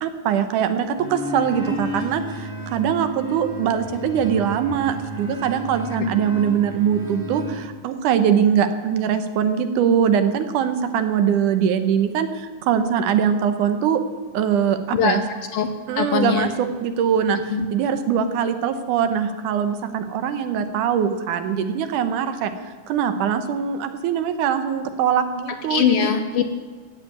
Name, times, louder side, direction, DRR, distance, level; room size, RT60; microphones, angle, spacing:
voice 1, 0.0-14.0 14.3-15.2 15.9-16.5 16.8-17.4 17.7-22.5 22.9-26.1, right 8 dB, 80° right, 9 dB, 2.5 m, -22 dB
sound 1, 1.0-7.5, right 2 dB, 5° right, 3.8 m, -32 dB
voice 2, 14.9-15.7 16.0-16.5 17.5-17.7 25.7-26.5, left 7 dB, 70° left, 7 dB, 1.4 m, -22 dB
14.5 x 8.1 x 9.5 m, 1.5 s
omnidirectional pair, 3.5 m